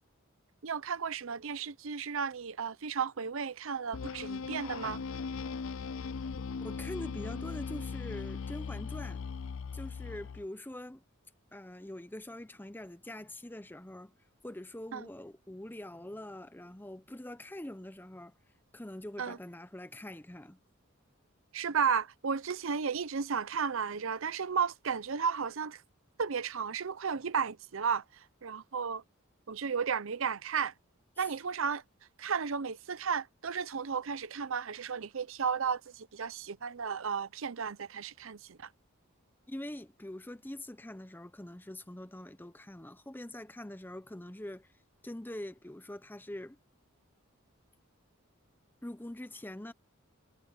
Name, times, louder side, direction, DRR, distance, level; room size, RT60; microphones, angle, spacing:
voice 1, 0.6-5.0 14.9-15.1 19.2-19.4 21.5-25.8 26.2-29.0 29.5-30.7 31.2-31.8 32.2-38.7, right 6 dB, 65° right, 0.6 m, -34 dB
sound 1, 3.9-10.5, left 5 dB, 65° left, 0.4 m, -39 dB
voice 2, 6.6-9.2 9.7-11.0 11.5-14.1 14.4-18.3 18.7-20.6 31.2-31.3 39.5-44.7 45.0-46.6 48.8-49.7, left 1 dB, 10° left, 0.7 m, -44 dB
head